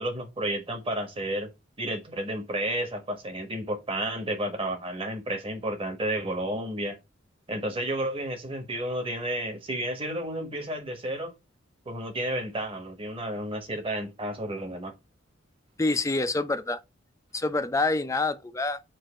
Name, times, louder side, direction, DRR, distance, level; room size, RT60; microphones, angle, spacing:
voice 1, 0.0-1.5 1.8-7.0 7.5-11.3 11.8-14.9, right 1 dB, 30° right, 1.4 m, -31 dB
voice 2, 15.8-16.8 17.3-18.8, left 2 dB, 15° left, 0.5 m, -26 dB
7.5 x 2.7 x 4.9 m
head